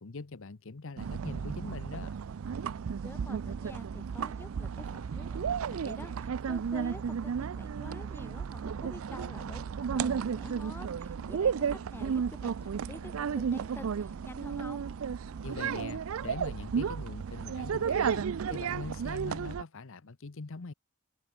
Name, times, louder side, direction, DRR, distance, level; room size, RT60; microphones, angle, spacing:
voice 1, 0.0-2.2 15.4-20.7, left 3 dB, 60° left, 0.8 m, -42 dB
sound 1, 1.0-19.6, right 6 dB, 65° right, 0.4 m, -33 dB
voice 2, 3.0-14.8, left 1 dB, 10° left, 0.9 m, -48 dB
sound 2, 4.6-7.7, right 6 dB, 90° right, 4.7 m, -60 dB
Wind instrument woodwind instrument, 8.9-18.4, left 2 dB, 85° left, 3.1 m, -64 dB
head